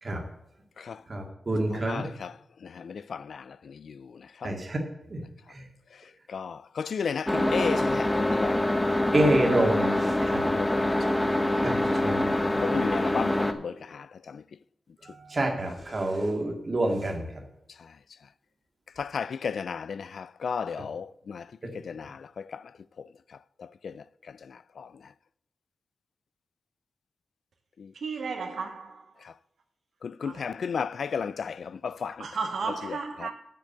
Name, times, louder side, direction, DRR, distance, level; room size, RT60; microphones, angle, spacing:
voice 1, 1.1-2.0 4.4-4.8 5.1-5.2 9.1-10.4 11.6-12.6 15.1-17.3, right 1 dB, 35° right, 2.1 m, -27 dB
voice 2, 1.8-2.3 2.6-4.1 4.4-4.5 6.3-8.6 8.9-9.0 10.5-11.2 12.6-14.4 19.0-21.4 21.7-22.6 23.8-23.9 24.8-24.9 27.8-27.9 30.0-32.3 32.9-33.3, left 6 dB, 75° left, 0.3 m, -34 dB
sound 1, 7.3-13.5, left 1 dB, 5° left, 0.8 m, -25 dB
voice 3, 27.9-29.1 30.2-30.5 32.2-33.3, right 4 dB, 80° right, 1.6 m, -34 dB
8.5 x 6.5 x 8.0 m
wide cardioid pair, 170°, 0 cm